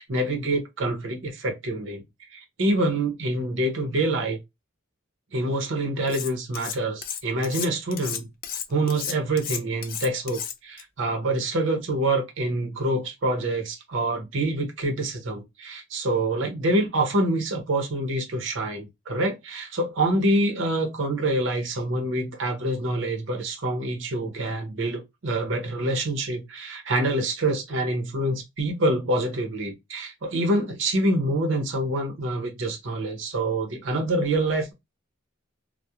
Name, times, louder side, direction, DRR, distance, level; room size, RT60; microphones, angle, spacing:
voice 1, 0.0-2.0 2.3-4.4 5.3-8.3 8.7-34.7, right 1 dB, 65° right, 0.7 m, -26 dB
Cutlery silverware, 6.1-6.8 7.0-10.8, left 9 dB, 45° left, 0.4 m, -33 dB
2.3 x 2.1 x 2.7 m
head